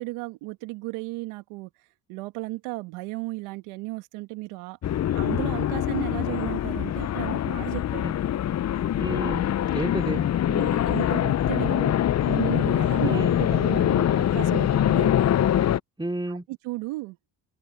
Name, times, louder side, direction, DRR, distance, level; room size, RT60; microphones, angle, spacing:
voice 1, 0.0-1.7 2.1-8.1 10.4-15.2 16.3-17.2, right 22 dB, 85° right, 2.1 m, -34 dB
sound 1, 4.8-15.8, left 11 dB, 35° left, 0.5 m, -24 dB
voice 2, 9.0-9.5 9.7-10.3 13.0-13.4 16.0-16.5, right 1 dB, 10° right, 2.7 m, -31 dB
open air
hypercardioid pair, 55°, 50 cm